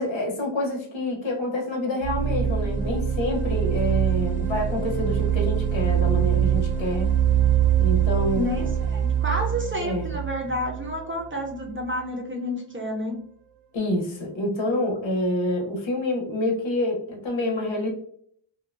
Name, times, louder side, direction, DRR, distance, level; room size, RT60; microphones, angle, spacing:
voice 1, 0.0-7.1 7.8-8.7 9.8-10.1 13.7-17.9, left 1 dB, 65° left, 0 dB, 0.9 m, -27 dB
sound 1, 2.0-11.8, right 9 dB, 75° right, 0.7 m, -24 dB
voice 2, 8.3-13.2, left 1 dB, 25° right, 0 dB, 0.5 m, -30 dB
2.7 x 2.2 x 2.5 m, 0.64 s
wide cardioid pair, 130°, 49 cm